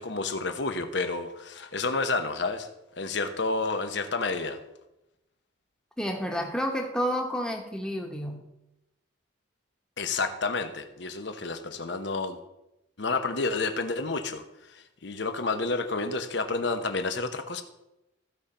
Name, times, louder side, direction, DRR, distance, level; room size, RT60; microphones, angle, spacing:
voice 1, 0.0-2.7 3.0-4.6 10.0-12.4 13.0-14.4 14.7-17.6, left 3 dB, 65° left, 8 dB, 0.9 m, -30 dB
voice 2, 6.0-8.4, equal, 5° left, 2 dB, 1.1 m, -30 dB
15.0 x 5.2 x 4.3 m, 0.92 s
head